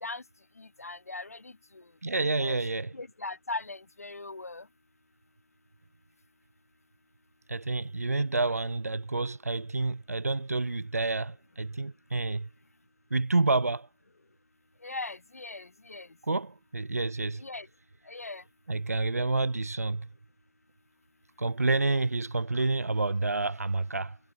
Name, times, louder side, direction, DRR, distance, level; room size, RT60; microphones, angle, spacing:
voice 1, 0.6-1.5 2.4-2.6 2.9-4.6 14.8-16.1 17.4-17.7 18.1-18.4, left 3 dB, 70° left, 2.0 m, -39 dB
voice 2, 2.0-2.9 7.5-12.5 13.1-13.9 16.2-17.4 18.7-20.1 21.4-24.2, right 3 dB, 70° right, 1.2 m, -29 dB
figure-of-eight pair, 165°, 8 cm